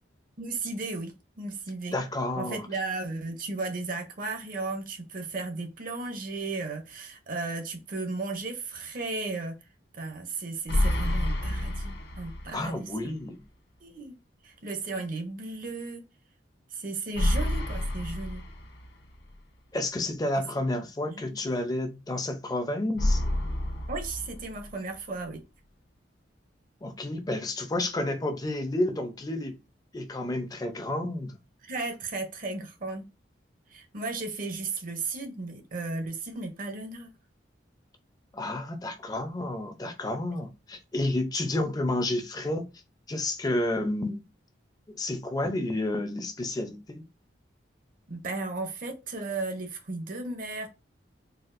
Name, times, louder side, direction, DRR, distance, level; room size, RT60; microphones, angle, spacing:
voice 1, 0.4-2.0 2.3-9.6 9.9-13.1 13.8-14.1 14.4-16.0 16.7-18.4 21.1-21.4 23.9-25.4 31.6-33.1 33.7-37.1 48.1-50.7, right 3 dB, 45° right, 0.6 m, -35 dB
voice 2, 1.9-2.7 12.5-13.4 19.7-23.2 26.8-29.6 29.9-31.4 38.3-42.7 43.1-44.2 44.9-47.0, left 1 dB, 20° left, 0.5 m, -30 dB
sound 1, 10.7-12.7 13.0-13.1 17.1-19.1 23.0-24.9, left 1 dB, 55° left, 0.7 m, -29 dB
4.1 x 2.3 x 2.5 m
head